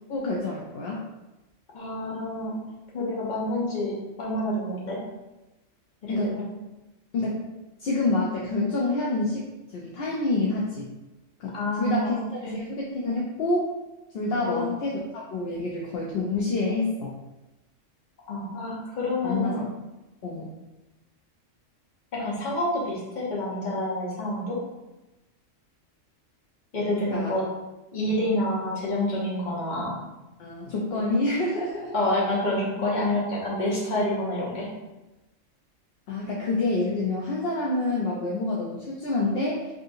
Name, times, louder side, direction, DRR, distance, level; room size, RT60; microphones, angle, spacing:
voice 1, 0.1-1.1 6.1-6.4 7.1-7.4 7.8-9.5 9.7-10.9 11.4-13.7 14.1-17.1 19.2-19.6 20.2-20.5 27.1-27.3 28.0-28.2 30.4-31.9 32.8-32.9 36.1-39.7, left 2 dB, 65° left, -4 dB, 0.6 m, -27 dB
voice 2, 1.7-2.6 2.9-3.9 4.2-5.0 6.0-6.4 11.5-12.6 14.4-14.7 18.3-19.7 22.1-24.6 26.7-27.4 27.9-30.0 31.9-34.7, left 1 dB, 40° left, -5 dB, 0.9 m, -28 dB
3.5 x 2.7 x 2.6 m, 1.0 s
omnidirectional pair, 1.4 m